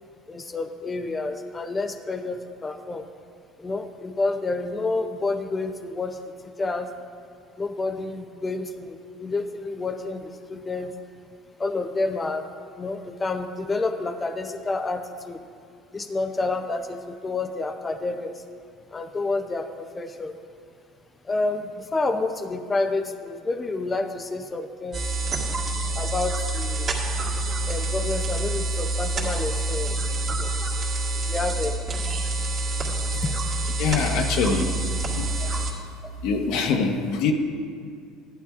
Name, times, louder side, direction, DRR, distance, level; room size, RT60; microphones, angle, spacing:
voice 1, 0.3-3.1 3.6-6.9 7.6-10.9 11.6-12.5 12.8-15.4 15.9-18.4 18.9-20.3 21.2-25.1 25.9-27.0 27.7-30.5 31.1-31.9 33.2-33.3, left 3 dB, 20° left, 6 dB, 0.5 m, -29 dB
sound 1, 24.9-35.7, right 2 dB, 35° right, 1.9 m, -27 dB
voice 2, 33.8-34.8 35.2-35.5 36.2-37.3, left 5 dB, 70° left, 4 dB, 1.1 m, -24 dB
14.5 x 11.0 x 2.4 m, 2.2 s
cardioid pair, 130°, 0 cm